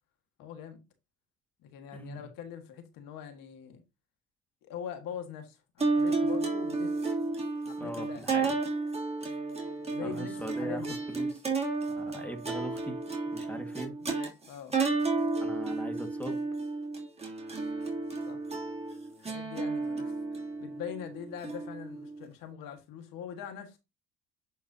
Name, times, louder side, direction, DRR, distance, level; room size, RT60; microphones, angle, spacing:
voice 1, 0.4-0.8 1.6-3.8 4.6-7.0 7.6-8.3 9.9-11.1 14.0-14.1 14.5-14.8 18.3-18.4 19.2-23.8, left 8 dB, 75° left, 1.8 m, -43 dB
voice 2, 1.9-2.3 7.8-8.5 10.0-11.4 11.9-13.0 13.3-13.9 15.4-16.4, right 1 dB, 5° left, 1.8 m, -40 dB
sound 1, 5.8-22.3, right 3 dB, 20° right, 2.9 m, -32 dB
10.5 x 4.7 x 2.8 m
supercardioid pair, 80°, 34 cm